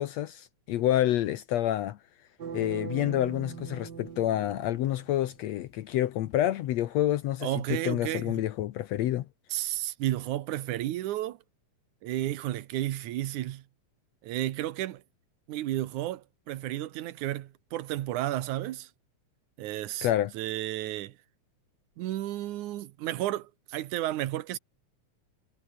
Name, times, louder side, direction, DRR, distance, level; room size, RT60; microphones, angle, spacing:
voice 1, 0.0-2.0 2.5-9.3 20.0-20.3, left 13 dB, 70° left, 2.0 m, -28 dB
sound 1, 2.4-5.4, right 7 dB, 40° right, 2.0 m, -41 dB
voice 2, 7.4-8.4 9.5-11.4 12.0-13.6 14.2-15.0 15.5-18.9 19.6-20.1 20.3-21.2 22.0-24.6, right 14 dB, 85° right, 2.5 m, -32 dB
omnidirectional pair, 3.4 m